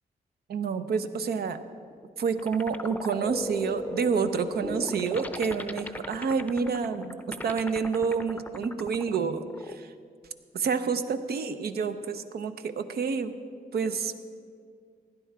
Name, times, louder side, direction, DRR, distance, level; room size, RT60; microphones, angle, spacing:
voice 1, 0.5-1.6 2.2-9.9 10.5-13.3 13.7-14.2, right 5 dB, 85° right, 10 dB, 0.7 m, -29 dB
sound 1, 1.7-9.8, left 2 dB, 10° left, 0.5 m, -37 dB
16.0 x 10.5 x 4.7 m, 2.1 s
cardioid pair, 85°, 16 cm